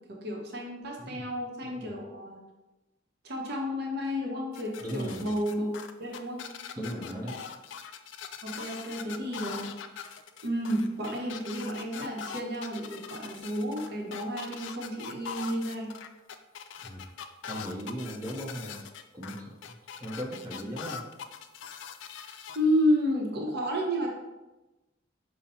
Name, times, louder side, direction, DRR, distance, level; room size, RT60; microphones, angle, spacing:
voice 1, 0.1-2.4 3.2-5.7 6.0-6.4 8.4-9.7 10.4-15.9 20.6-20.7 22.1-24.1, equal, 60° right, 0 dB, 0.7 m, -31 dB
sound 1, 4.5-22.6, left 7 dB, 85° left, 0.3 m, -42 dB
voice 2, 4.8-5.3 6.8-7.4 16.8-17.0 17.4-18.8 19.1-19.7 20.0-21.0, equal, 20° right, -3 dB, 0.8 m, -37 dB
5.3 x 2.1 x 4.2 m, 1.1 s
head